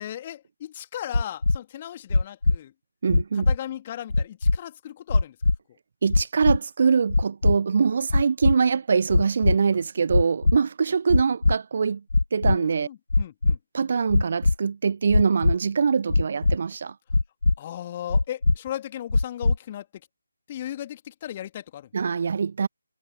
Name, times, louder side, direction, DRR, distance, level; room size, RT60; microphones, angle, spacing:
voice 1, 0.0-2.7 3.3-5.4 12.4-13.6 17.6-20.0 20.5-21.9, left 11 dB, 25° left, 2.5 m, -36 dB
sound 1, 1.1-1.6 2.1-2.6 3.1-3.6 4.1-4.6 5.1-5.6 6.1-6.6 7.1-7.5 8.1-8.5 9.1-9.6 10.1-10.6 11.1-11.5 12.1-12.6 13.1-13.6 14.1-14.5 15.1-15.5 16.1-16.6 17.1-17.5 18.1-18.6 19.1-19.6, left 3 dB, 60° left, 1.5 m, -20 dB
voice 2, 3.0-3.5 6.0-12.0 12.3-12.9 13.7-16.9 21.9-22.7, right 5 dB, 40° right, 0.7 m, -23 dB
figure-of-eight pair, 150°, 0 cm